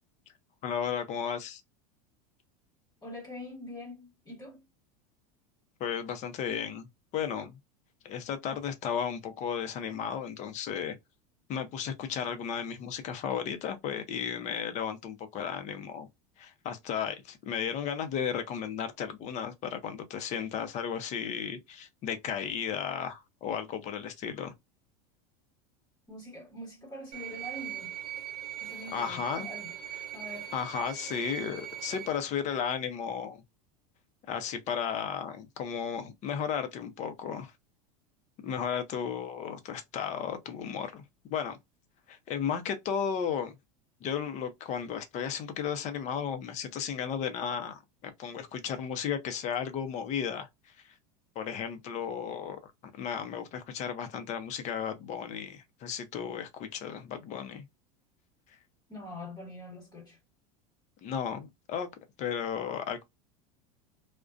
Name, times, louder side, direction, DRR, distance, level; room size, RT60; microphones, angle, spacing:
voice 1, 0.6-1.6 5.8-6.9 7.1-7.6 8.0-11.0 11.5-16.1 16.4-24.5 28.9-29.5 30.5-33.4 34.3-37.5 38.4-41.0 41.3-41.6 42.1-43.5 44.0-50.9 51.4-57.7 61.0-61.9 62.2-63.0, left 7 dB, 40° left, 0.6 m, -34 dB
voice 2, 3.0-4.7 26.1-28.0 28.6-29.7 30.1-30.5 58.9-60.2, left 1 dB, 20° left, 1.3 m, -44 dB
sound 1, 27.1-32.2, right 10 dB, 85° right, 0.6 m, -40 dB
2.4 x 2.2 x 2.4 m
supercardioid pair, 130°, 19 cm